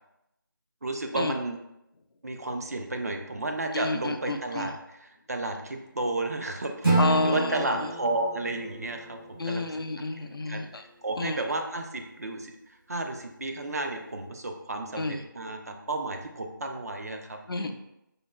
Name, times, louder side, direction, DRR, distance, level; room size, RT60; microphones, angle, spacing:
voice 1, 0.8-1.6 2.2-9.7 10.5-10.6 11.0-17.7, right 2 dB, 45° right, 4 dB, 0.4 m, -32 dB
voice 2, 3.7-4.7 7.0-7.7 9.4-10.8 11.2-11.4 15.0-15.2 17.5-17.7, left 3 dB, 85° left, 6 dB, 0.4 m, -30 dB
Acoustic guitar / Strum, 6.8-10.0, right 2 dB, 80° right, 1.3 m, -29 dB
5.1 x 2.2 x 2.2 m, 0.84 s
figure-of-eight pair, 165°, 12 cm